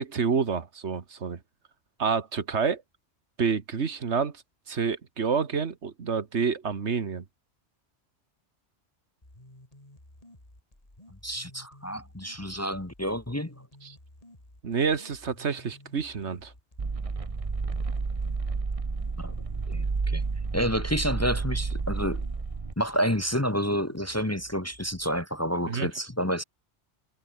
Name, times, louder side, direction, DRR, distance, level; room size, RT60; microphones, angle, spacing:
voice 1, 0.0-1.4 2.0-2.8 3.4-4.3 4.7-7.2 13.8-14.0 14.6-16.5 25.7-25.9, right 5 dB, 75° right, 1.8 m, -28 dB
sound 1, 9.2-25.2, left 1 dB, 30° left, 4.8 m, -53 dB
voice 2, 11.2-13.5 19.2-19.3 19.7-20.2 20.5-22.2 22.8-26.4, equal, 15° left, 1.2 m, -29 dB
sound 2, 16.8-22.7, right 4 dB, 30° right, 1.1 m, -30 dB
omnidirectional pair, 1.2 m